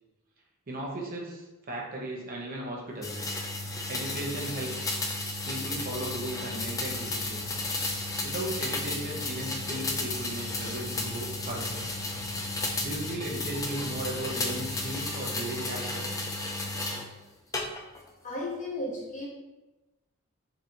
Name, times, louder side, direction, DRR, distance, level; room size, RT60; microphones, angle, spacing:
voice 1, 0.7-3.2 3.9-4.9 5.4-7.4 8.2-11.8 12.8-16.1, right 1 dB, 40° right, -2 dB, 0.8 m, -36 dB
sound 1, 3.0-17.1 17.5-18.1, left 2 dB, 15° left, 0.3 m, -33 dB
sound 2, 5.7-15.0, left 2 dB, 85° left, 0.6 m, -47 dB
voice 2, 18.2-19.3, left 1 dB, 35° left, -3 dB, 0.9 m, -35 dB
3.9 x 2.6 x 4.4 m, 1.1 s
head